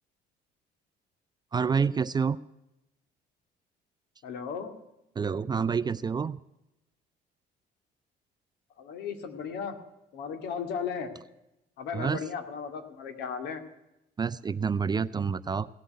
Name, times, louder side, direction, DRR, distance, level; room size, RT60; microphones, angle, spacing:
voice 1, 1.5-2.4 5.2-6.4 11.9-12.2 14.2-15.7, right 6 dB, 25° right, 15 dB, 0.4 m, -28 dB
voice 2, 4.2-4.7 8.8-9.8 10.1-11.1 11.8-13.6, left 6 dB, 80° left, 7 dB, 2.2 m, -35 dB
17.0 x 7.7 x 9.4 m, 0.90 s
cardioid pair, 110°, 17 cm